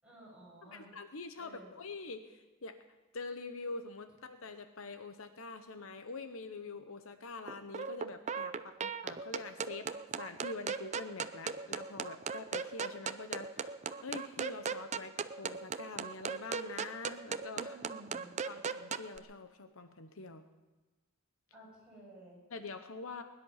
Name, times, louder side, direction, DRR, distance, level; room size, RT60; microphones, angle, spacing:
voice 1, 0.0-0.9 1.4-1.7 17.7-18.3 21.5-22.4, right 1 dB, 5° right, -7 dB, 7.4 m, -53 dB
voice 2, 0.6-2.8 3.1-9.9 10.2-13.7 14.0-17.8 18.4-20.4 22.5-23.2, left 3 dB, 65° left, 9 dB, 0.8 m, -45 dB
sound 1, 7.5-19.2, right 6 dB, 30° right, 0.5 m, -38 dB
21.5 x 11.0 x 5.7 m, 1.2 s
head